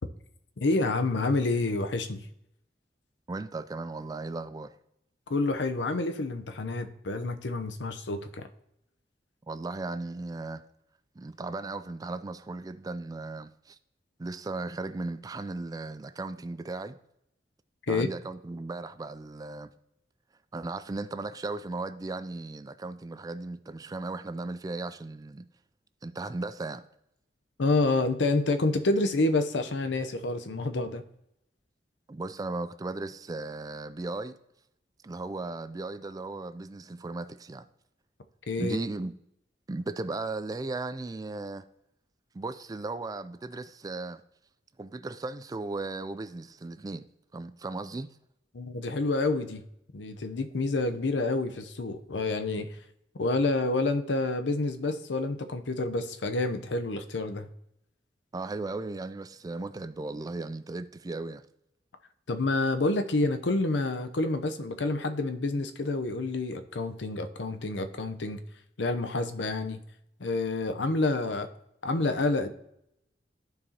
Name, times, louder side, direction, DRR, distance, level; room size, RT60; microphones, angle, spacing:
voice 1, 0.6-2.3 5.3-8.5 17.9-18.1 27.6-31.0 38.5-38.8 48.5-49.6 49.9-52.8 53.2-57.5 62.3-68.4 68.8-69.8 70.2-71.5 71.8-72.5, left 2 dB, 90° left, 0.7 m, -28 dB
voice 2, 3.3-4.7 9.5-10.6 11.2-13.8 14.2-17.0 17.9-19.7 20.5-25.5 26.0-26.8 32.1-34.4 35.0-37.7 38.6-39.1 39.7-41.6 42.3-44.2 44.8-48.1 58.3-61.4 65.6-65.7, right 3 dB, 20° right, 0.3 m, -36 dB
14.0 x 4.7 x 2.8 m
head